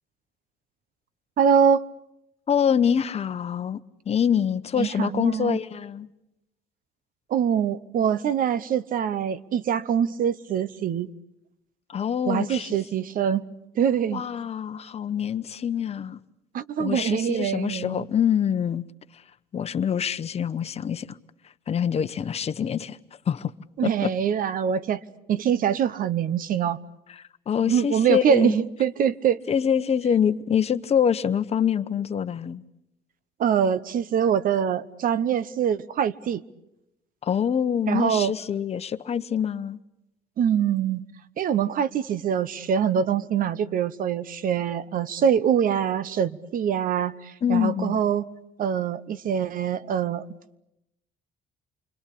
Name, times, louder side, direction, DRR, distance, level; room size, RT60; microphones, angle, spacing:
voice 1, 1.4-1.9 4.8-5.6 7.3-11.1 12.3-13.5 13.8-14.2 16.5-18.1 23.8-25.0 25.3-26.8 27.7-29.4 33.4-36.4 37.9-38.3 40.4-41.1 41.4-48.3 48.6-50.2, right 8 dB, 55° right, 1.0 m, -24 dB
voice 2, 2.5-3.8 4.1-6.1 11.9-12.8 14.1-16.2 16.8-18.8 19.5-21.2 21.7-23.0 23.3-23.5 23.8-24.1 27.2-28.6 29.5-32.6 37.2-39.8 47.4-48.0, left 8 dB, 40° left, 1.0 m, -25 dB
28.5 x 22.5 x 8.6 m
cardioid pair, 110°, 17 cm